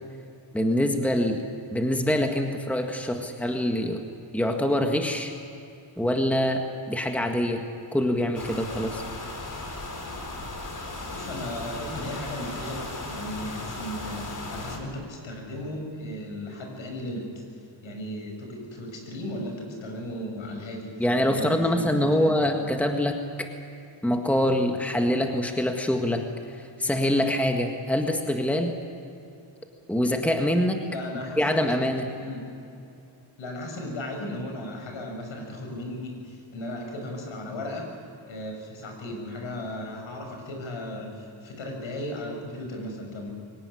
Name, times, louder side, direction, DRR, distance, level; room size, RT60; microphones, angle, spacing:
voice 1, 0.5-1.4 1.7-4.0 4.3-5.3 6.0-7.6 7.9-9.0 21.0-23.2 24.0-28.7 29.9-30.8 31.4-32.1, left 1 dB, 5° left, 4 dB, 1.8 m, -25 dB
sound 1, 8.3-14.8, left 2 dB, 40° left, 4.0 m, -36 dB
voice 2, 11.0-17.3 17.8-22.4 30.9-31.6 32.2-32.5 33.4-37.9 38.2-43.3, left 1 dB, 70° left, 2 dB, 6.6 m, -36 dB
23.5 x 18.0 x 9.8 m, 2.7 s
cardioid pair, 105°, 49 cm